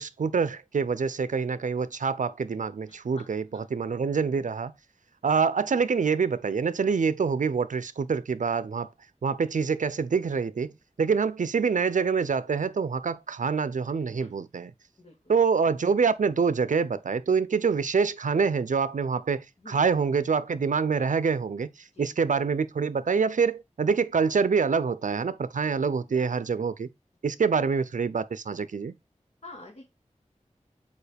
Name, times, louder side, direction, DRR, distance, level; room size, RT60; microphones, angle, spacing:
voice 1, 0.0-4.7 5.2-8.9 9.2-10.7 11.0-14.7 15.3-26.9 27.2-28.9, right 5 dB, 85° right, 0.5 m, -26 dB
voice 2, 2.9-3.6 14.2-14.4 15.0-15.1 19.6-19.8 21.9-22.1 25.8-26.4 27.3-27.4 29.4-29.9, left 2 dB, 55° left, 1.9 m, -49 dB
7.0 x 4.7 x 3.4 m
wide cardioid pair, 50°, 13 cm